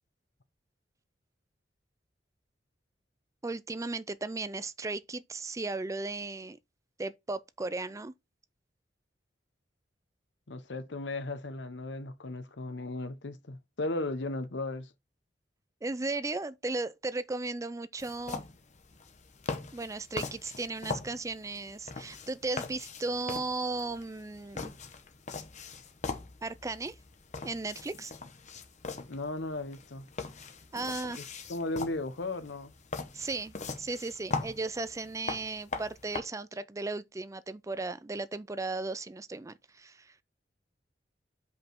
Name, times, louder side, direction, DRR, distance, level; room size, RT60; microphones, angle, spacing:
voice 1, 3.4-6.6 7.0-8.1 15.8-18.4 19.7-24.7 26.4-26.9 27.4-28.1 30.7-31.2 33.1-40.1, right 3 dB, 20° right, 0.4 m, -36 dB
voice 2, 10.5-14.9 29.1-30.1 31.2-31.3 31.5-32.7, left 2 dB, 80° left, 0.9 m, -36 dB
sound 1, 18.0-36.2, left 4 dB, 40° left, 1.0 m, -41 dB
5.3 x 5.0 x 4.5 m
head